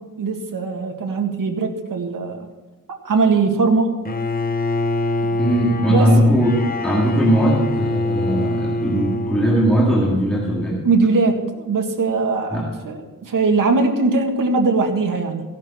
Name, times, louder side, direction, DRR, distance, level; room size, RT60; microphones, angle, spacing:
voice 1, 0.2-2.5 3.0-3.9 5.8-6.1 10.8-15.4, right 4 dB, 75° right, 3 dB, 1.9 m, -20 dB
Bowed string instrument, 4.1-10.2, left 2 dB, 30° left, 0.7 m, -25 dB
voice 2, 5.2-10.8 12.5-12.7, equal, ahead, -5 dB, 2.2 m, -19 dB
16.0 x 11.5 x 4.4 m, 1.2 s
wide cardioid pair, 170°, 33 cm